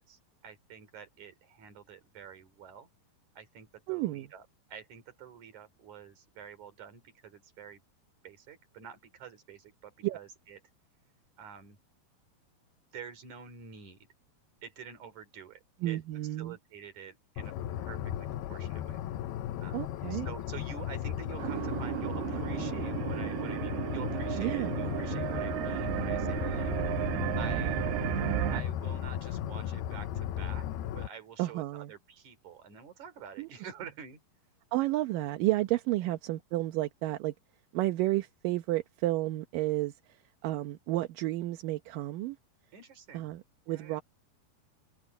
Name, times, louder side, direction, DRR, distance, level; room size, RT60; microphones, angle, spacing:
voice 1, 0.1-2.9 3.4-7.8 8.2-10.6 11.4-11.8 12.9-14.1 14.6-16.0 16.4-19.0 19.6-27.8 28.5-30.7 30.9-34.2 36.0-36.1 42.7-43.3 43.7-44.0, right 7 dB, 50° right, 4.3 m, -48 dB
voice 2, 3.9-4.3 10.0-10.2 15.8-16.6 19.7-20.3 24.4-24.7 31.4-31.9 33.4-33.5 34.7-37.3 37.7-42.4 43.1-44.0, right 16 dB, 70° right, 2.4 m, -31 dB
sound 1, 17.4-31.1, left 11 dB, 85° left, 2.9 m, -36 dB
sound 2, 21.4-28.6, right 17 dB, 90° right, 2.7 m, -33 dB
omnidirectional pair, 4.5 m